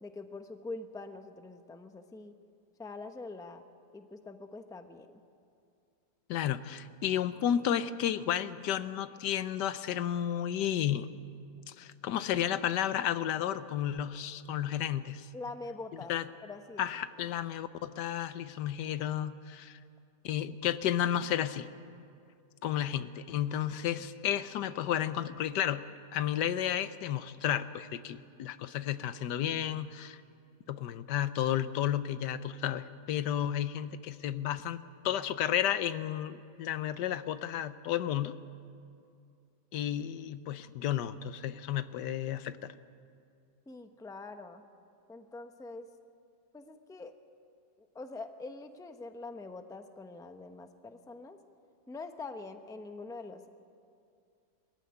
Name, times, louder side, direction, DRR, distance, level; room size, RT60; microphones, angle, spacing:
voice 1, 0.0-2.3 2.8-3.6 3.9-5.2 15.3-16.1 16.4-16.9 43.7-44.6 45.1-45.9 46.5-47.1 47.9-51.4 51.9-53.5, left 3 dB, 5° left, 7 dB, 0.5 m, -44 dB
voice 2, 6.3-11.1 11.7-15.3 16.1-16.3 16.8-19.8 20.2-21.7 22.6-25.9 26.1-30.2 30.7-38.4 39.7-42.7, left 10 dB, 85° left, 13 dB, 1.4 m, -32 dB
21.5 x 15.0 x 9.7 m, 2.4 s
omnidirectional pair, 1.8 m